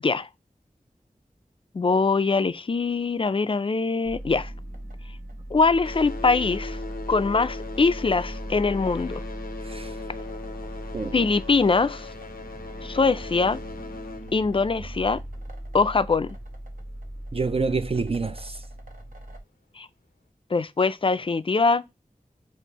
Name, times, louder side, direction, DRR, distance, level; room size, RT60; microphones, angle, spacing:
voice 1, 1.7-4.5 5.5-6.8 7.1-9.2 11.1-12.1 12.8-13.6 14.3-15.2 15.7-16.4 19.8-19.9 20.5-21.8, left 4 dB, 35° left, 0.3 m, -23 dB
sound 1, 4.0-5.3 5.6-15.9 16.8-16.9 17.6-17.7 18.3-18.4, left 3 dB, 90° left, 0.6 m, -40 dB
sound 2, 4.0-19.4, right 1 dB, 70° right, 0.8 m, -38 dB
voice 2, 9.6-10.0 10.9-11.2 17.3-18.6, right 4 dB, 40° right, 0.4 m, -27 dB
5.3 x 2.6 x 2.8 m
wide cardioid pair, 40°, 15 cm